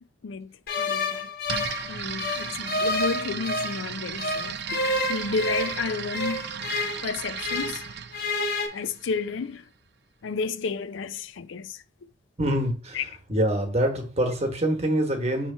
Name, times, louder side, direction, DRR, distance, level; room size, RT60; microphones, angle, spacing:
sound 1, 0.7-3.8 4.2-7.9 8.1-8.7, left 2 dB, 55° left, 1.0 m, -29 dB
voice 1, 0.8-1.3 1.9-4.6 5.1-6.5 7.0-7.8 8.7-9.6 10.2-11.8 12.9-13.0, left 4 dB, 80° left, 0.4 m, -31 dB
sound 2, 1.5-9.3, right 8 dB, 55° right, 0.4 m, -35 dB
voice 2, 12.4-15.5, right 1 dB, 35° right, 1.2 m, -25 dB
5.5 x 3.1 x 5.5 m
head